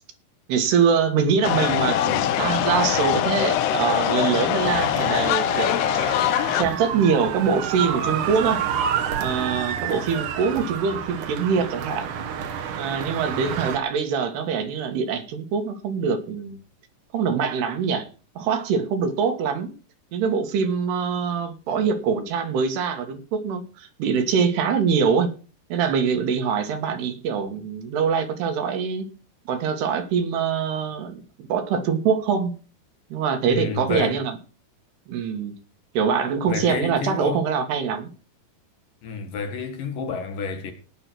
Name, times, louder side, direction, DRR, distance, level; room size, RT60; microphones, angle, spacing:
voice 1, 0.5-5.7 6.5-8.6 9.2-12.1 12.8-16.6 17.1-18.1 18.4-19.7 20.1-25.3 25.7-29.1 29.5-31.1 31.5-32.5 33.1-34.4 35.1-35.5 36.0-38.1, right 6 dB, 80° right, 3.7 m, -24 dB
sound 1, 1.4-6.6, left 11 dB, 85° left, 2.9 m, -22 dB
sound 2, 4.6-13.8, right 8 dB, 60° right, 2.4 m, -29 dB
voice 2, 33.5-34.2 36.5-37.4 39.0-40.7, left 5 dB, 60° left, 3.0 m, -30 dB
18.0 x 6.0 x 6.1 m
omnidirectional pair, 4.7 m